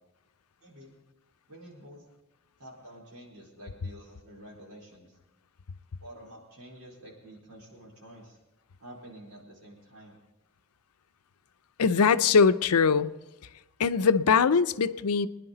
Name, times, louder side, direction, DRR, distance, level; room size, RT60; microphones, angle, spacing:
voice 1, 0.6-0.9 1.5-2.1 2.6-5.2 6.0-8.4 8.8-10.2, right 1 dB, 85° right, -2 dB, 4.4 m, -49 dB
voice 2, 11.8-13.1 13.8-15.3, left 5 dB, 90° left, 12 dB, 0.6 m, -22 dB
22.5 x 10.5 x 3.9 m, 1.0 s
head